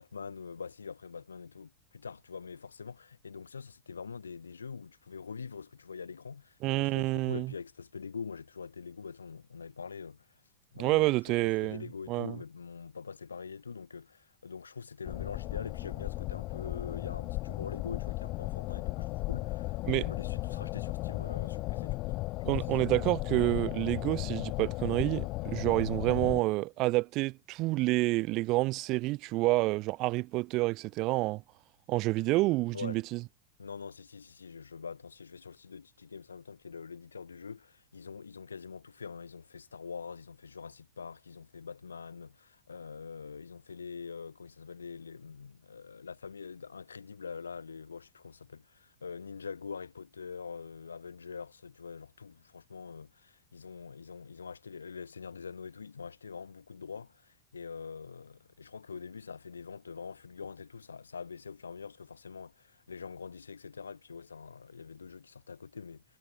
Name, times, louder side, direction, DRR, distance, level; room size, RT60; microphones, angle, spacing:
voice 1, 0.0-10.4 10.7-22.1 32.7-33.0 33.6-66.0, left 5 dB, 75° left, 4.5 m, -44 dB
voice 2, 6.6-7.5 10.8-12.4 19.8-20.0 22.5-31.4 31.9-33.2, right 21 dB, 40° right, 1.9 m, -28 dB
sound 1, 15.0-26.4, left 20 dB, 40° left, 1.9 m, -35 dB
figure-of-eight pair, 90°, 0 cm